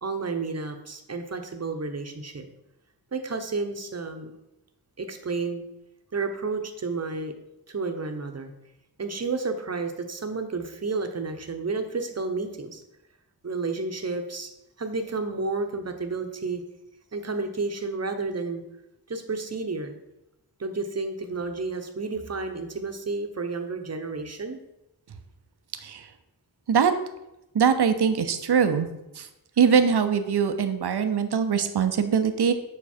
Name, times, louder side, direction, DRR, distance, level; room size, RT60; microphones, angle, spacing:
voice 1, 0.0-2.4 3.1-4.3 5.0-5.6 6.1-7.3 7.7-8.5 9.0-12.8 13.4-14.5 14.8-16.6 17.1-18.6 19.1-19.9 20.6-24.6, right 3 dB, 40° right, 6 dB, 1.0 m, -31 dB
voice 2, 27.5-28.9 29.2-29.3 29.6-32.5, right 7 dB, 70° right, 9 dB, 0.7 m, -22 dB
7.2 x 5.3 x 4.4 m, 0.88 s
wide cardioid pair, 75°, 40 cm